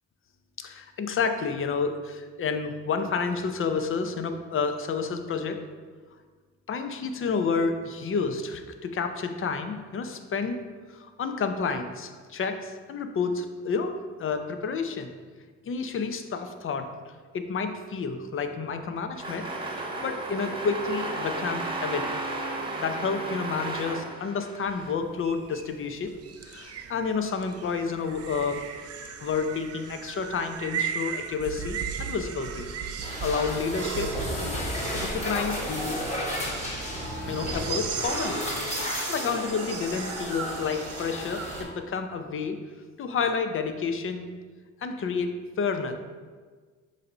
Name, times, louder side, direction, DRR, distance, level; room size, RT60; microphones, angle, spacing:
voice 1, 0.6-5.6 6.7-10.6 10.9-13.9 14.2-15.1 15.7-16.9 17.3-19.5 19.7-22.2 22.8-26.1 26.4-28.6 29.2-34.1 34.4-34.6 34.9-36.0 37.3-38.4 38.7-42.6 43.0-44.3 44.8-45.9, left 5 dB, 45° left, 7 dB, 0.6 m, -30 dB
sound 1, 19.1-24.9, right 2 dB, 15° right, 1.0 m, -34 dB
sound 2, 24.7-41.6, right 7 dB, 55° right, 0.6 m, -37 dB
sound 3, 33.0-41.6, left 1 dB, 20° left, 1.6 m, -33 dB
7.2 x 2.7 x 5.4 m, 1.5 s
cardioid pair, 90°, 30 cm